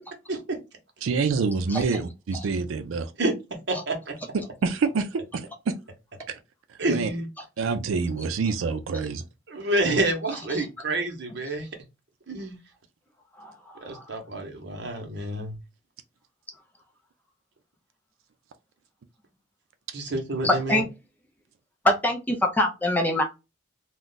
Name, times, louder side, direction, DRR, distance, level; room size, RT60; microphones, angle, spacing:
voice 1, 1.0-3.1 4.3-5.7 6.9-7.1 7.6-9.2, right 4 dB, 90° right, 0.4 m, -27 dB
voice 2, 3.7-4.2 6.8-7.3 9.5-11.7 12.3-12.6 13.8-15.6 19.9-20.8, right 2 dB, 55° right, 0.8 m, -28 dB
voice 3, 20.4-20.9 21.8-23.2, left 1 dB, 10° left, 0.5 m, -24 dB
2.3 x 2.2 x 3.8 m
head